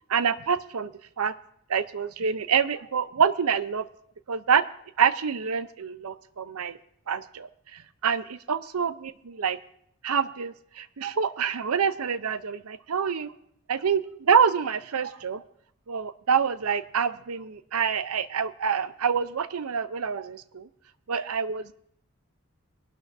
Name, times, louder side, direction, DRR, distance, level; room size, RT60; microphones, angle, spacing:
voice 1, 0.1-1.4 1.7-3.9 4.3-4.6 5.0-6.8 7.1-9.6 10.0-13.3 13.7-15.4 15.9-20.7 21.1-21.7, right 6 dB, 85° right, 14 dB, 0.6 m, -26 dB
21.5 x 12.0 x 2.6 m, 0.70 s
head